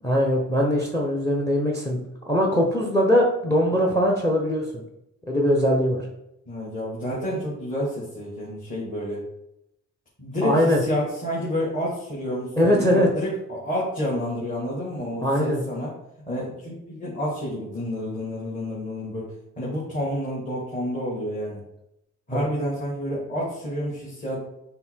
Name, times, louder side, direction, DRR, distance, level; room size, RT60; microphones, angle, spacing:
voice 1, 0.0-2.0 2.3-4.8 5.3-6.0 10.4-10.8 12.6-13.1 15.2-15.6 22.3-22.4, equal, 10° left, 0 dB, 0.8 m, -21 dB
voice 2, 6.5-9.2 10.2-16.0 16.3-21.6 22.3-24.4, equal, 25° left, -6 dB, 1.8 m, -29 dB
5.5 x 2.2 x 4.4 m, 0.83 s
cardioid pair, 90°, 30 cm